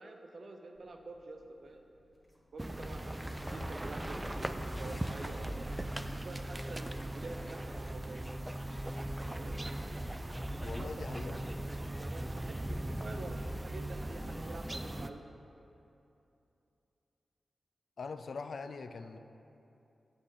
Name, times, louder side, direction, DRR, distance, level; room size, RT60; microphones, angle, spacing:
voice 1, 0.0-1.8 2.5-5.7 6.1-8.2 9.4-9.6 10.5-15.2, right 2 dB, 65° right, 4 dB, 0.7 m, -48 dB
sound 1, 0.7-12.0, equal, 15° left, 1.7 m, -57 dB
sound 2, 2.6-15.1, right 1 dB, 15° right, 0.4 m, -39 dB
voice 2, 10.6-11.4 18.0-19.2, left 4 dB, 70° left, 9 dB, 0.4 m, -42 dB
8.2 x 6.7 x 3.8 m, 2.8 s
cardioid pair, 40°, 0 cm